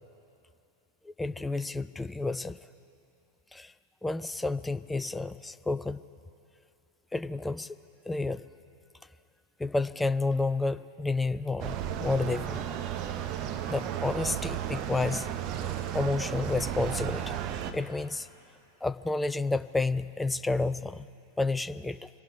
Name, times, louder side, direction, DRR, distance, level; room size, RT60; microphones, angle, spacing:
voice 1, 1.1-2.6 3.5-3.7 4.0-6.0 7.1-7.8 8.1-8.5 9.6-12.6 13.6-15.3 15.9-17.4 17.7-18.3 18.8-21.1 21.4-22.1, left 3 dB, 10° left, 15 dB, 0.4 m, -30 dB
sound 1, 11.6-17.7, right 10 dB, 40° right, 0.9 m, -34 dB
25.5 x 11.5 x 4.8 m, 2.7 s
figure-of-eight pair, 90°, 0 cm